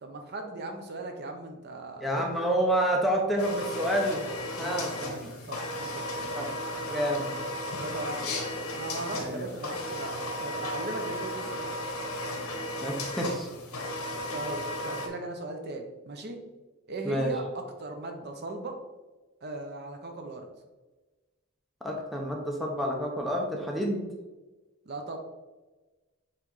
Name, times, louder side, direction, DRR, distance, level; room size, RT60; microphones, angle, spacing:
voice 1, 0.0-2.4 4.6-6.6 7.7-11.6 14.3-16.4 16.9-18.8 19.4-20.5 24.9-25.2, right 2 dB, 45° right, 4 dB, 0.7 m, -38 dB
voice 2, 2.0-4.2 4.6-4.9 6.3-6.6 6.9-7.4 9.1-9.4 12.8-13.5 17.0-17.3 21.8-24.0, equal, ahead, -1 dB, 0.7 m, -28 dB
sound 1, 3.4-15.1, left 1 dB, 70° left, 1.2 m, -35 dB
7.3 x 3.3 x 3.9 m, 1.2 s
head